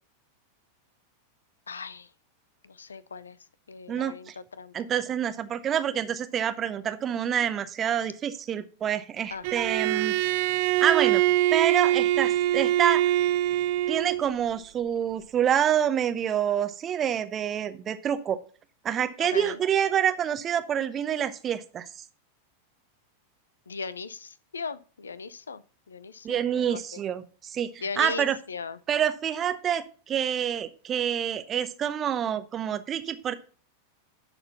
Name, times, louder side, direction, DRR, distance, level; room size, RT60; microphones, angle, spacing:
voice 1, 1.7-2.1 2.7-3.4 3.7-4.3 4.6-4.7 9.3-9.4 19.3-19.6 23.7-25.6 25.9-26.8 27.8-28.8, left 5 dB, 70° left, 0.5 m, -37 dB
voice 2, 3.9-4.3 4.7-10.1 10.8-11.2 11.5-13.1 13.9-18.4 18.8-22.0 26.2-28.4 28.9-33.4, right 9 dB, 25° right, 0.8 m, -27 dB
Bowed string instrument, 9.4-14.3, right 13 dB, 50° right, 0.5 m, -24 dB
11.0 x 4.2 x 5.7 m
figure-of-eight pair, 90°, 0 cm